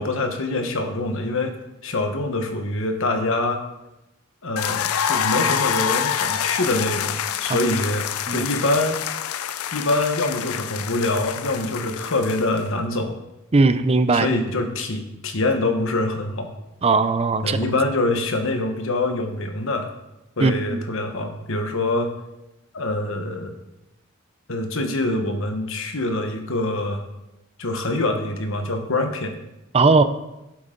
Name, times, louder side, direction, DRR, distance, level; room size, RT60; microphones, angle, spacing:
voice 1, 0.0-1.5 1.8-3.6 4.4-9.0 9.7-13.2 14.1-16.5 17.4-19.9 20.4-22.1 22.7-23.5 24.5-27.0 27.6-29.4, left 2 dB, 70° left, 5 dB, 1.2 m, -25 dB
sound 1, 4.6-12.7, left 9 dB, 85° left, 0.4 m, -26 dB
voice 2, 13.5-14.3 16.8-17.6 20.4-20.8 29.7-30.0, right 3 dB, 30° right, 11 dB, 0.5 m, -18 dB
11.0 x 8.0 x 3.9 m, 0.94 s
head